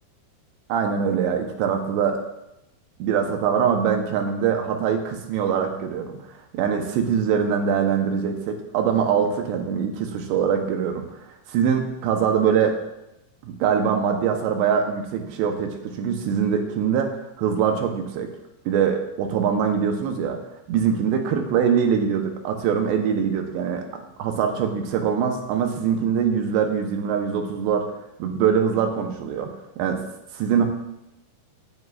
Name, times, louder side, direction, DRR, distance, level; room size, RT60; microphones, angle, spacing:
voice 1, 0.7-2.2 3.0-6.2 6.5-11.2 11.5-12.8 13.4-18.3 18.7-20.4 20.7-23.8 24.2-27.9 28.2-30.0 30.3-30.7, right 7 dB, 80° right, 4 dB, 3.0 m, -23 dB
16.0 x 9.8 x 2.5 m, 0.88 s
omnidirectional pair, 5.2 m